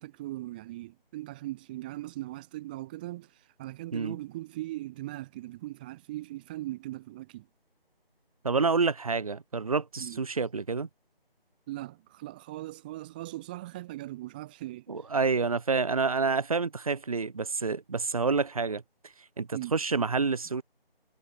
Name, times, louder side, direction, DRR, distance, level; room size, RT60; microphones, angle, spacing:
voice 1, 0.0-7.5 10.0-10.2 11.7-15.1 19.5-19.7, right 16 dB, 10° right, 3.7 m, -39 dB
voice 2, 8.4-10.9 14.9-20.6, right 4 dB, 35° right, 7.2 m, -28 dB
figure-of-eight pair, 170°, 30 cm